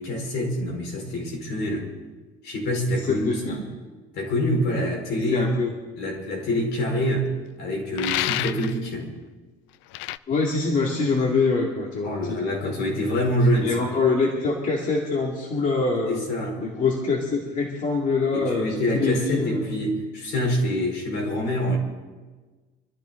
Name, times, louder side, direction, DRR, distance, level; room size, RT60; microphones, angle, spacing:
voice 1, 0.0-1.9 2.4-3.6 4.1-5.5 6.0-7.3 7.6-9.1 12.0-13.9 16.1-16.6 18.3-21.8, equal, 65° left, 0 dB, 4.8 m, -26 dB
voice 2, 2.9-3.6 5.2-5.7 10.3-12.4 13.6-16.2 16.6-19.6, left 4 dB, 45° left, -2 dB, 2.4 m, -24 dB
sound 1, 8.0-8.8 9.9-10.2, left 15 dB, 90° left, 0.4 m, -28 dB
24.5 x 13.5 x 3.9 m, 1.3 s
cardioid pair, 140°, 19 cm